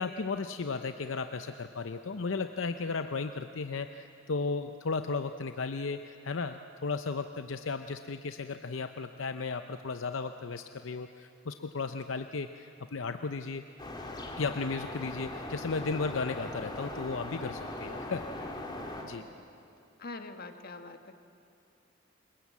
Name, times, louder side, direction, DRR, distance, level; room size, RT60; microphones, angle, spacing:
voice 1, 0.0-13.6 14.4-18.3 19.0-19.2, left 4 dB, 75° left, 8 dB, 0.7 m, -35 dB
sound 1, 13.8-19.0, left 1 dB, 25° left, 2.5 m, -40 dB
voice 2, 20.0-21.2, left 3 dB, 50° left, 7 dB, 1.4 m, -43 dB
28.0 x 22.0 x 8.4 m, 2.6 s
head